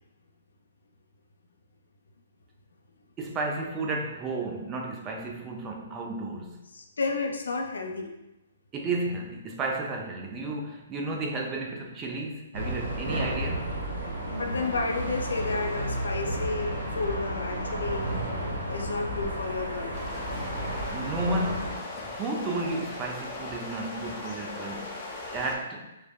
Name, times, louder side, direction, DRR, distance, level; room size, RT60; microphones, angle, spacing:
voice 1, 3.2-6.6 8.7-13.7 20.9-25.9, right 2 dB, 25° right, 1 dB, 0.4 m, -33 dB
voice 2, 6.7-8.1 14.3-18.1 18.7-19.9, left 3 dB, 80° left, 3 dB, 0.4 m, -31 dB
sound 1, 12.5-21.8, right 1 dB, 85° right, 0.9 m, -32 dB
sound 2, 19.9-25.6, left 2 dB, 25° left, 0.5 m, -39 dB
3.2 x 2.1 x 2.2 m, 0.95 s
hypercardioid pair, 135°, 0 cm